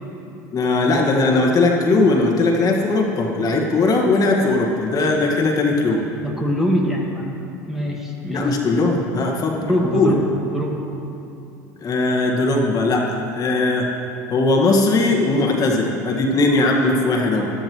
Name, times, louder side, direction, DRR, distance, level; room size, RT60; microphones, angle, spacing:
voice 1, 0.5-6.0 8.3-10.2 11.8-13.9 14.3-17.5, left 2 dB, 40° left, 0 dB, 1.7 m, -19 dB
voice 2, 6.2-7.4 7.7-8.5 9.5-10.8, equal, 5° right, -1 dB, 1.6 m, -23 dB
13.5 x 13.0 x 3.1 m, 2.8 s
hypercardioid pair, 85°, 9 cm